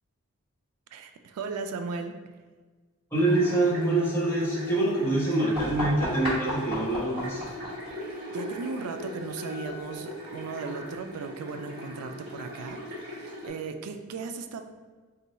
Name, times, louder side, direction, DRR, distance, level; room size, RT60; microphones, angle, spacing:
voice 1, 0.9-2.2 7.9-14.6, right 4 dB, 90° right, 7 dB, 0.3 m, -37 dB
voice 2, 3.1-7.4, right 2 dB, 10° left, -7 dB, 0.9 m, -25 dB
sound 1, 3.1-13.5, left 1 dB, 45° right, 1.4 m, -40 dB
sound 2, 5.5-11.1, left 1 dB, 25° right, 1.3 m, -37 dB
3.8 x 2.2 x 4.1 m, 1.4 s
head